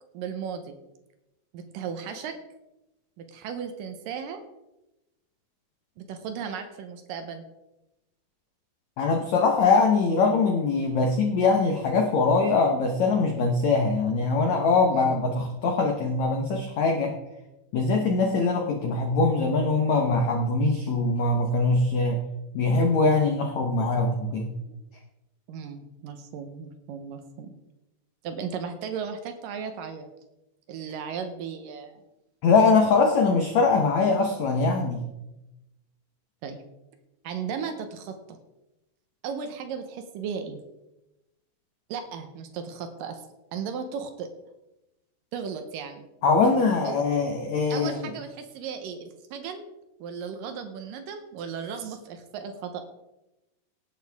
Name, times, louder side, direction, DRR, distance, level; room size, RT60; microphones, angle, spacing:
voice 1, 0.1-0.8 1.5-2.4 3.2-4.4 6.0-7.4 15.1-15.2 20.7-20.9 24.7-24.8 25.5-27.5 28.2-30.1 30.7-32.0 36.4-36.6 37.2-38.4 39.2-40.6 41.9-43.2 43.5-44.3 45.3-46.1 46.8-47.0 47.7-49.6 50.0-52.8, right 6 dB, 75° right, 7 dB, 2.1 m, -36 dB
voice 2, 9.0-17.1 17.7-22.2 22.5-24.5 32.4-35.1 46.2-48.1, left 3 dB, 90° left, 2 dB, 1.5 m, -22 dB
18.5 x 8.8 x 3.5 m, 0.96 s
omnidirectional pair, 5.0 m